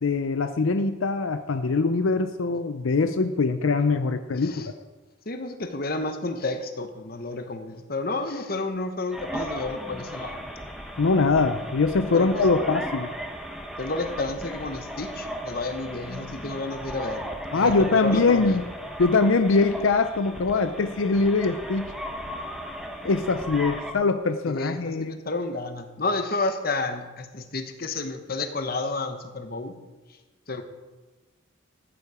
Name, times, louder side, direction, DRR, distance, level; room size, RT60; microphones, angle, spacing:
voice 1, 0.0-4.7 11.0-13.1 17.5-18.7 19.0-21.9 23.0-25.2, left 3 dB, 85° left, 9 dB, 0.6 m, -23 dB
voice 2, 5.3-10.4 12.1-12.4 13.8-18.6 24.5-29.7 30.5-30.6, left 2 dB, 50° left, 8 dB, 1.1 m, -31 dB
sound 1, 9.1-23.9, equal, ahead, 1.0 m, -36 dB
14.0 x 9.6 x 4.9 m, 1.2 s
head